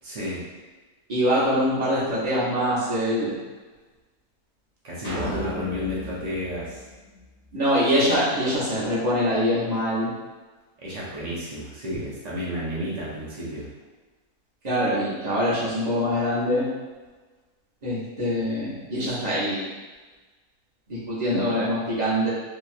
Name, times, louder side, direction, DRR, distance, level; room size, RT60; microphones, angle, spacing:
voice 1, 0.0-0.4 4.8-6.8 10.8-13.7, equal, 80° right, -7 dB, 0.3 m, -31 dB
voice 2, 1.1-3.3 5.2-5.3 7.5-10.1 14.6-16.7 17.8-19.6 20.9-22.3, equal, 35° right, -8 dB, 0.8 m, -24 dB
sound 1, 5.0-7.5, left 2 dB, 40° left, 0.6 m, -35 dB
3.0 x 2.8 x 2.4 m, 1.3 s
omnidirectional pair, 1.7 m